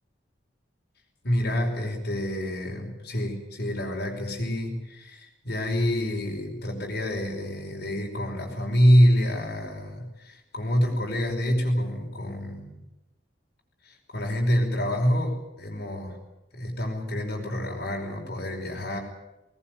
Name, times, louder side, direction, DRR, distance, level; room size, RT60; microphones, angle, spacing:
voice 1, 1.2-12.7 13.8-16.2 16.5-19.0, equal, 60° left, 0 dB, 5.3 m, -26 dB
20.0 x 20.0 x 9.5 m, 0.96 s
head